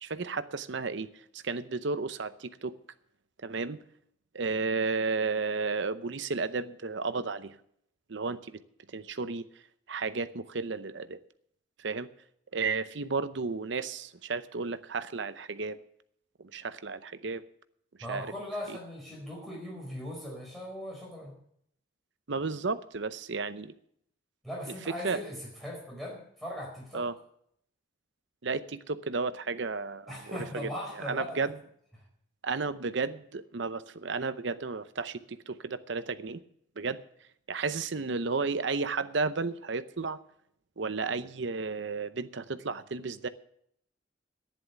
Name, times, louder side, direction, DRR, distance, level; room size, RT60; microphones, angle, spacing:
voice 1, 0.0-2.7 3.4-3.8 4.3-7.6 8.1-8.6 8.9-9.5 9.9-11.2 11.8-12.1 12.5-15.8 16.4-17.4 18.1-18.3 18.7-18.8 22.3-23.7 25.0-25.2 26.9-27.1 28.4-30.7 31.1-31.6 32.4-36.4 36.8-37.0 37.5-40.2 40.8-43.3, right 4 dB, 70° right, 13 dB, 0.7 m, -33 dB
voice 2, 18.0-21.3 24.4-27.0 30.1-31.5, equal, ahead, -2 dB, 4.6 m, -39 dB
11.5 x 10.5 x 7.1 m, 0.70 s
head